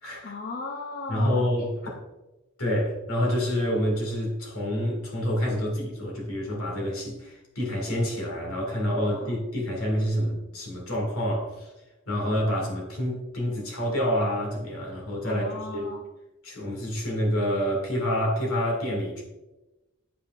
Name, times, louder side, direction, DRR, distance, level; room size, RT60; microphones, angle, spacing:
voice 1, 0.2-2.0 9.0-9.4 15.2-16.1, left 3 dB, 45° left, 2 dB, 0.5 m, -38 dB
voice 2, 1.1-1.7 2.6-11.7 12.1-15.9 16.4-19.2, equal, 90° left, -2 dB, 2.1 m, -27 dB
8.5 x 5.5 x 2.4 m, 1.0 s
head